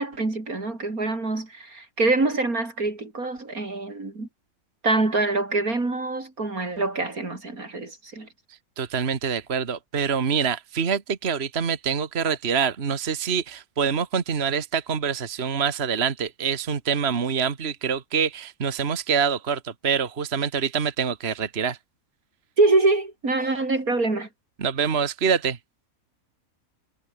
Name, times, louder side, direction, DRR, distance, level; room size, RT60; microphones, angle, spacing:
voice 1, 0.0-4.3 4.8-8.3 12.2-12.4 22.6-24.3, right 3 dB, 85° right, 5.0 m, -25 dB
voice 2, 8.8-21.8 24.6-25.6, right 6 dB, 45° right, 1.7 m, -25 dB
omnidirectional pair, 1.5 m